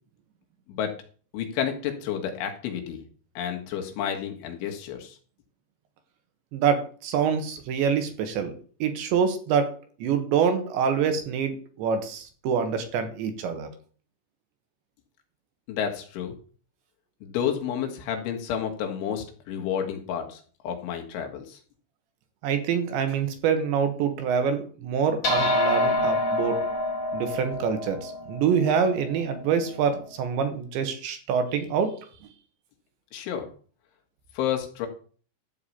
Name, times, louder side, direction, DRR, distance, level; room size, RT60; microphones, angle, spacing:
voice 1, 1.3-3.0 3.4-5.2 15.7-16.4 17.2-21.6 33.1-33.5 34.4-34.9, left 8 dB, 75° left, 3 dB, 4.0 m, -30 dB
voice 2, 6.5-8.5 8.8-9.7 10.0-13.7 22.4-26.6 27.1-31.9, right 6 dB, 70° right, 7 dB, 3.5 m, -26 dB
sound 1, 25.2-29.9, left 1 dB, 30° left, 3.5 m, -27 dB
13.0 x 4.8 x 8.5 m, 0.43 s
omnidirectional pair, 5.7 m